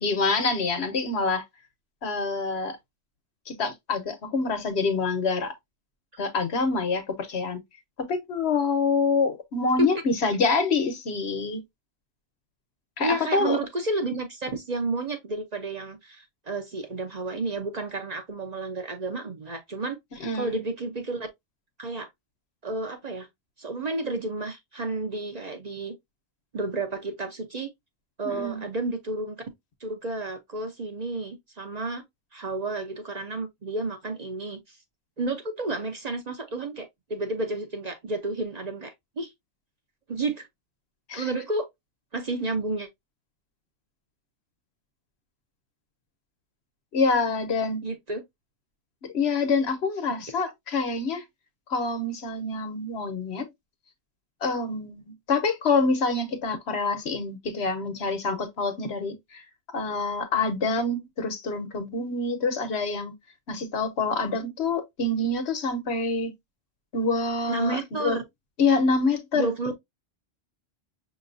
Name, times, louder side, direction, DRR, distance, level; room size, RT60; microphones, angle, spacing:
voice 1, 0.0-1.4 2.0-2.8 3.5-5.5 6.2-7.6 8.1-11.6 13.0-13.6 20.2-20.6 28.2-28.6 41.1-41.3 46.9-47.8 49.1-51.2 51.7-53.5 54.4-59.4 59.7-63.1 63.5-66.3 66.9-68.2 68.6-69.5, left 3 dB, 70° left, 1.2 m, -26 dB
voice 2, 13.0-21.3 21.8-22.1 22.6-23.3 23.6-26.0 26.5-27.7 28.2-29.4 29.8-32.0 32.3-34.6 35.2-39.3 40.1-40.5 41.1-41.7 42.1-42.9 47.8-48.2 67.5-68.2 69.3-69.7, right 2 dB, 40° right, 0.8 m, -31 dB
5.9 x 2.9 x 2.5 m
omnidirectional pair, 1.1 m